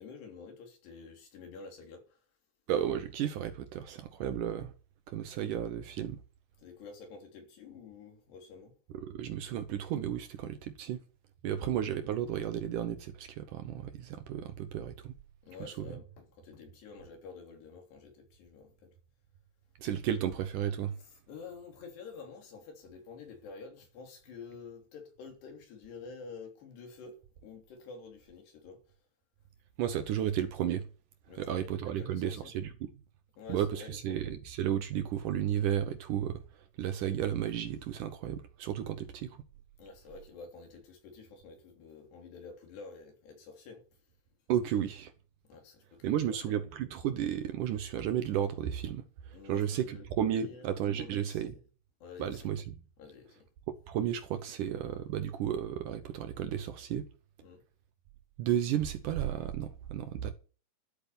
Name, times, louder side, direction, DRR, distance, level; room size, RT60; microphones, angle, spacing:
voice 1, 0.0-2.2 6.6-8.8 11.5-11.7 15.4-18.9 21.0-28.8 31.3-32.5 33.4-34.2 39.8-43.9 45.4-46.6 49.3-50.1 50.4-50.7 51.0-51.6 52.0-52.6 53.0-53.5 57.4-57.6, left 5 dB, 85° left, 5.4 m, -49 dB
voice 2, 2.7-4.7 5.1-6.2 9.0-11.0 11.4-15.1 15.6-15.7 19.8-21.0 29.8-30.9 31.4-32.7 33.5-36.4 36.8-39.4 44.5-45.1 46.0-49.0 49.4-51.5 52.2-52.8 53.9-57.0 58.4-60.3, right 10 dB, 75° right, 2.0 m, -33 dB
12.5 x 8.3 x 6.9 m
omnidirectional pair, 4.7 m